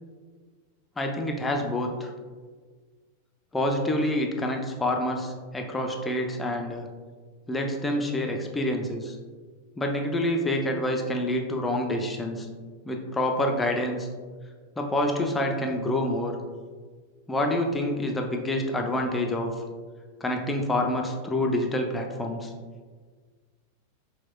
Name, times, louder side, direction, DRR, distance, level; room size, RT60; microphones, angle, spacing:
voice 1, 1.0-2.1 3.5-6.8 7.5-9.2 9.8-12.5 12.8-14.1 14.8-16.4 17.3-19.5 20.2-22.5, left 1 dB, 10° left, 2 dB, 0.5 m, -27 dB
5.8 x 2.2 x 2.2 m, 1.5 s
figure-of-eight pair, 90°, 0 cm